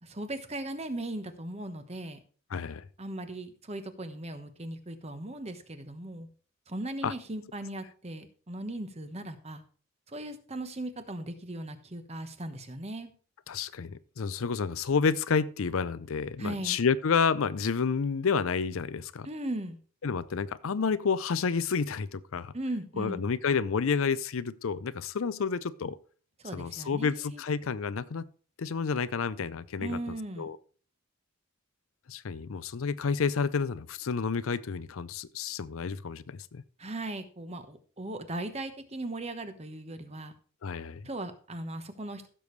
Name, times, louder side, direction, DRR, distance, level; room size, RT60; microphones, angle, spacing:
voice 1, 0.0-2.2 3.0-6.3 6.7-9.6 10.1-13.1 16.4-16.8 19.2-19.8 22.5-23.2 26.4-27.4 29.8-30.5 36.8-40.3 41.0-42.3, right 1 dB, 30° right, 1.1 m, -38 dB
voice 2, 2.5-2.9 7.0-7.1 13.5-19.3 20.0-22.5 23.0-26.0 26.5-28.3 28.6-30.0 30.4-30.6 32.1-36.6 40.6-41.1, left 5 dB, 85° left, 0.5 m, -30 dB
15.5 x 6.9 x 3.2 m
head